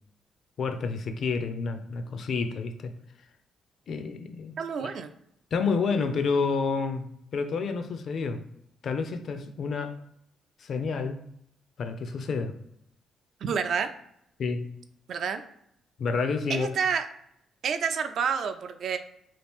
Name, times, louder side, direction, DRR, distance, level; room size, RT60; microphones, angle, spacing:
voice 1, 0.6-2.9 3.9-4.5 4.8-4.9 5.5-7.1 7.3-8.4 8.8-10.0 10.6-11.2 11.8-12.5 14.4-14.7 16.0-16.8, left 4 dB, 55° left, 8 dB, 0.4 m, -29 dB
voice 2, 4.6-5.1 13.4-13.9 15.1-15.4 16.5-17.1 17.6-19.0, right 6 dB, 65° right, 8 dB, 0.4 m, -28 dB
2.8 x 2.4 x 3.5 m, 0.74 s
cardioid pair, 90°, 0 cm